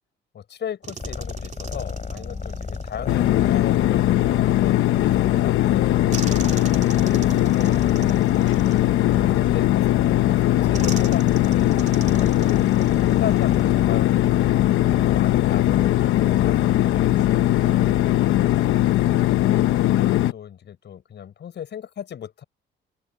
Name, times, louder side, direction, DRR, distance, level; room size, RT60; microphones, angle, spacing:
voice 1, 0.3-7.8 9.3-11.8 12.7-14.6 14.8-17.5 19.3-22.4, left 9 dB, 60° left, 6.2 m, -36 dB
sound 1, 0.8-3.5 6.1-9.6 10.7-14.1 14.4-14.6 16.9-17.3, right 5 dB, 35° right, 2.8 m, -39 dB
sound 2, 1.0-20.2, left 5 dB, 40° left, 6.1 m, -33 dB
voice 2, 2.1-2.9 8.0-8.4 9.4-9.7 12.0-12.4 17.7-18.5, right 2 dB, 15° right, 7.2 m, -46 dB
sound 3, 3.1-20.3, left 14 dB, 85° left, 1.0 m, -20 dB
cardioid pair, 90°, 20 cm